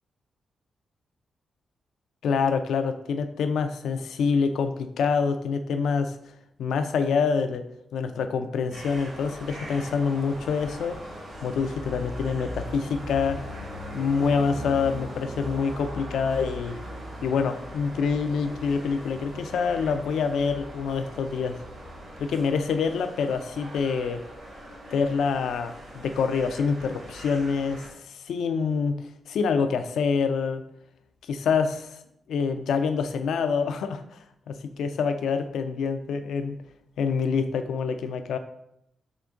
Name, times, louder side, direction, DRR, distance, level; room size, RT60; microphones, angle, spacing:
voice 1, 2.2-6.2 6.6-7.6 7.9-11.0 11.4-13.4 13.9-16.8 17.2-21.6 22.2-24.2 24.9-28.9 29.3-30.6 31.3-32.0 32.3-34.2 34.5-36.6 37.0-38.4, left 5 dB, 85° left, 9 dB, 0.3 m, -26 dB
sound 1, 8.7-27.9, equal, 70° right, 1.5 m, -40 dB
3.7 x 2.8 x 3.4 m, 0.77 s
cardioid pair, 75°, 0 cm